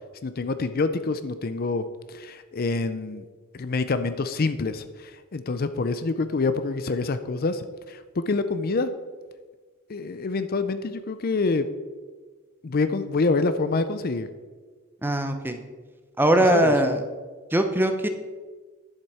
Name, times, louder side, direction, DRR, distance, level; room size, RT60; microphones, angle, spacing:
voice 1, 0.2-3.2 3.5-8.9 9.9-11.7 12.6-14.3 16.4-16.7, left 3 dB, 40° left, 11 dB, 0.5 m, -26 dB
voice 2, 15.0-15.6 16.2-17.0 17.5-18.1, right 1 dB, 10° right, 7 dB, 0.7 m, -21 dB
10.5 x 7.4 x 4.8 m, 1.4 s
head